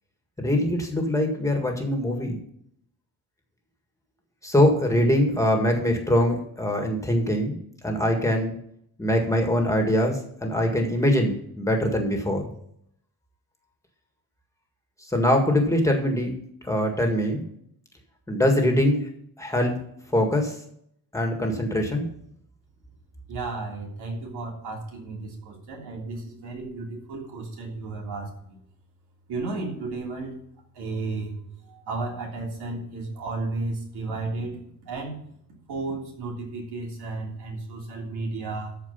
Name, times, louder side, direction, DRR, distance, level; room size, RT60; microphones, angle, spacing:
voice 1, 0.4-2.4 4.4-7.5 7.8-8.5 9.0-12.5 15.1-16.3 16.7-17.4 18.3-19.1 19.4-19.7 20.1-20.6 21.1-22.1, left 1 dB, 10° left, 3 dB, 1.8 m, -23 dB
voice 2, 23.3-28.6 29.3-30.4 30.7-31.4 31.7-35.2 35.7-38.7, right 3 dB, 85° right, -1 dB, 3.3 m, -33 dB
13.5 x 4.7 x 5.6 m, 0.70 s
cardioid pair, 140°, 38 cm